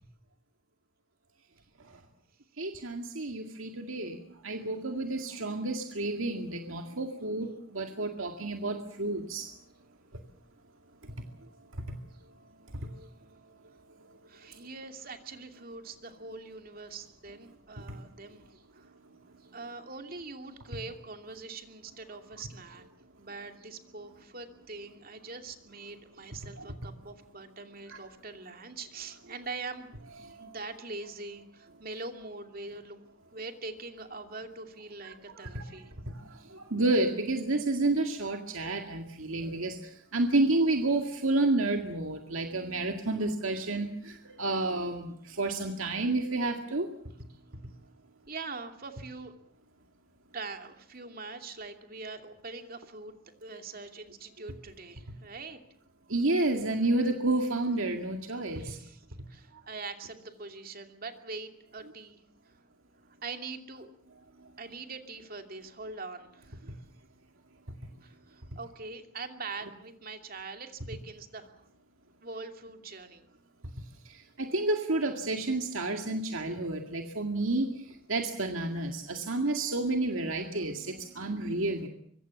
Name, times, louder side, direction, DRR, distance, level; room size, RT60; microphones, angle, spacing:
voice 1, 2.6-4.2 4.4-9.5 12.9-13.1 17.9-18.0 26.6-26.7 27.9-28.0 30.3-30.5 35.5-35.6 36.1-46.9 56.1-58.8 74.1-77.7 78.1-81.9, right 2 dB, 75° right, 4 dB, 2.1 m, -30 dB
voice 2, 14.3-18.9 19.5-22.9 23.2-33.0 33.3-35.9 48.3-49.3 50.3-53.1 53.4-55.6 58.5-62.6 63.2-63.9 64.6-66.8 68.0-71.7 72.2-73.3, right 3 dB, 45° right, 5 dB, 2.6 m, -43 dB
25.0 x 24.0 x 7.2 m, 0.67 s
head